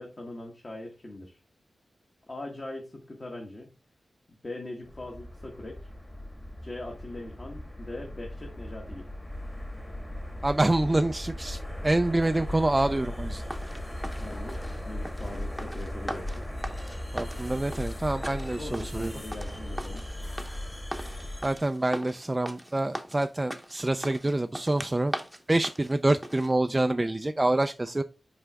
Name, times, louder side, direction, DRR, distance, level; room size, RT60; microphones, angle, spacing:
voice 1, 0.0-1.4 2.3-3.7 4.4-5.8 6.6-9.1 14.2-16.5 18.3-20.0, left 2 dB, 35° left, 1 dB, 1.3 m, -41 dB
sound 1, 4.8-21.6, left 1 dB, 15° left, 1.4 m, -37 dB
voice 2, 10.4-13.4 17.1-19.1 21.4-25.1 25.5-28.0, right 2 dB, 20° right, 9 dB, 0.3 m, -26 dB
sound 2, 13.3-26.5, right 1 dB, 5° right, 0.8 m, -40 dB
5.6 x 4.9 x 3.4 m, 0.30 s
wide cardioid pair, 95°, 0 cm